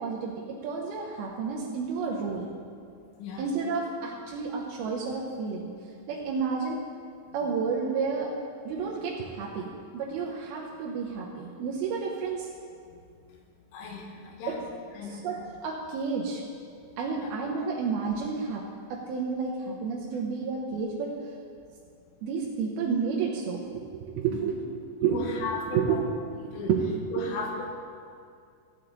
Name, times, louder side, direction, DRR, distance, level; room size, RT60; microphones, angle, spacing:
voice 1, 0.0-2.5 3.4-5.7 6.1-6.9 7.3-8.3 8.7-12.5 14.5-14.6 15.1-16.4 17.0-18.6 18.9-21.2 22.2-26.0 26.7-26.9, right 5 dB, 85° right, -2 dB, 2.2 m, -31 dB
voice 2, 13.7-14.6 14.9-15.3 17.2-17.3 24.3-24.6 25.1-26.0 26.5-26.7 27.1-27.7, left 3 dB, 90° left, 0 dB, 3.8 m, -35 dB
16.5 x 8.7 x 4.0 m, 2.3 s
omnidirectional pair, 5.5 m